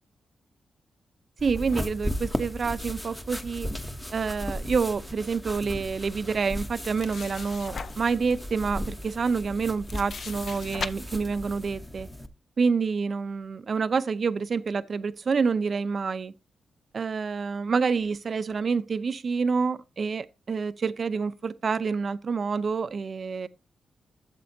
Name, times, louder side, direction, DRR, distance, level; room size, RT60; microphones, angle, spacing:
sound 1, 1.4-12.3, equal, 10° left, 0.9 m, -36 dB
voice 1, 1.4-3.7 4.1-12.1 12.6-16.3 16.9-23.5, right 5 dB, 45° right, 0.6 m, -28 dB
sound 2, 6.5-8.2 8.8-8.9 9.3-10.9, left 5 dB, 55° left, 0.6 m, -38 dB
12.0 x 7.5 x 2.7 m
wide cardioid pair, 115°, 0 cm